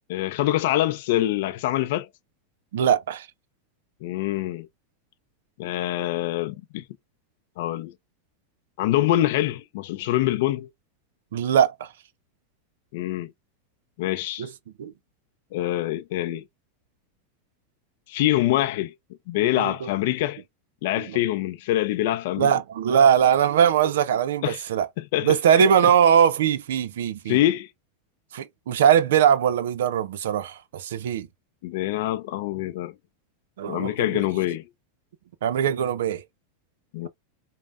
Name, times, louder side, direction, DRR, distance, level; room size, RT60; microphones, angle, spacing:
voice 1, 0.1-2.1 4.0-4.7 5.6-6.8 7.6-7.9 8.8-10.7 12.9-13.3 14.0-14.5 15.5-16.4 18.1-18.9 19.3-20.4 20.8-22.5 24.4-24.6 25.0-25.9 27.3-27.7 31.6-32.9 33.7-34.6 36.9-37.1, left 14 dB, 65° left, 0.4 m, -25 dB
voice 2, 2.7-3.3 11.3-11.9 14.4-14.5 14.8-14.9 19.6-19.9 22.4-24.9 25.2-27.4 28.3-31.3 33.6-34.2 35.4-36.2, right 8 dB, 80° right, 0.4 m, -21 dB
5.3 x 2.1 x 2.4 m
hypercardioid pair, 115°, 0 cm